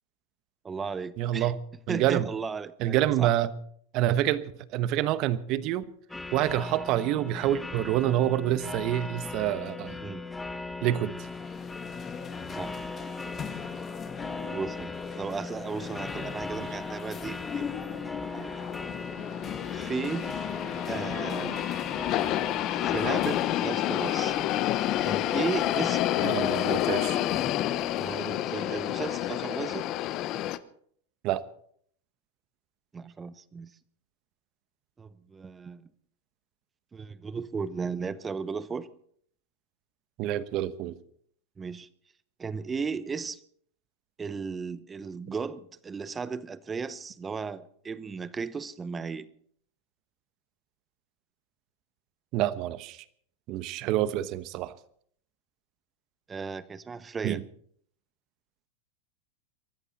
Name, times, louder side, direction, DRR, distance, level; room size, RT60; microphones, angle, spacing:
voice 1, 0.6-1.5 1.9-3.3 10.0-10.3 12.5-12.7 14.5-14.9 15.2-17.7 18.3-18.7 19.7-20.3 20.9-21.7 22.7-24.4 25.0-26.0 28.0-29.9 32.9-33.7 35.0-35.9 36.9-38.9 41.6-41.9 42.4-43.4 44.2-49.3 56.3-57.4, right 5 dB, 20° right, 16 dB, 0.9 m, -35 dB
voice 2, 1.2-1.6 1.9-2.3 2.8-3.5 3.9-4.4 4.7-5.8 6.3-10.0 10.8-11.2 26.2-27.2 31.2-31.4 40.2-40.9 52.3-53.0 53.5-54.7 57.2-57.4, right 13 dB, 50° right, 15 dB, 1.1 m, -27 dB
sound 1, 6.1-24.0, left 3 dB, 10° left, 1.1 m, -39 dB
sound 2, 11.1-28.4, left 6 dB, 25° left, 1.6 m, -40 dB
sound 3, 17.9-30.6, left 14 dB, 45° left, 0.8 m, -29 dB
23.0 x 13.5 x 4.2 m, 0.62 s
hypercardioid pair, 110°, 0 cm